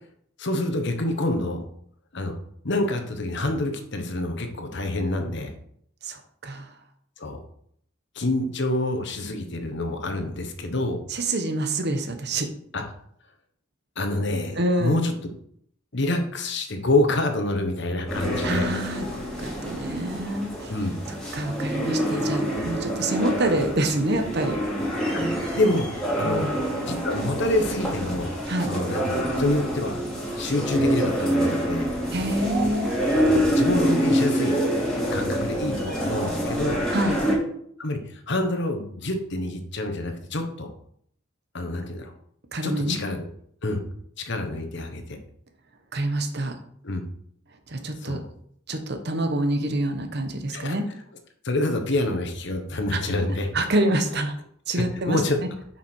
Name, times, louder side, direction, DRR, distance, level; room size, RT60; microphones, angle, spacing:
voice 1, 0.4-1.6 2.1-2.4 2.6-5.5 7.2-7.4 8.1-11.0 12.7-12.8 14.0-15.1 15.9-18.7 20.7-21.0 25.2-25.9 26.2-26.4 26.8-28.3 28.6-30.0 30.4-31.9 33.3-34.6 35.1-36.8 37.8-40.7 41.5-42.1 42.6-43.2 43.6-43.8 44.2-45.2 46.8-47.0 48.0-48.2 50.5-50.8 51.4-53.5 54.7-55.4, left 1 dB, 60° left, 5 dB, 1.2 m, -27 dB
voice 2, 6.0-6.7 11.1-12.5 14.6-15.1 18.4-20.7 21.1-24.6 26.2-26.5 28.5-28.7 32.1-32.9 36.9-37.2 42.5-43.0 45.9-46.5 47.7-48.2 48.7-50.8 52.9-53.0 53.5-54.4 54.7-55.2, right 1 dB, 55° right, 7 dB, 1.1 m, -26 dB
sound 1, 18.1-37.4, equal, 5° left, 2.7 m, -26 dB
7.5 x 6.0 x 4.6 m, 0.67 s
head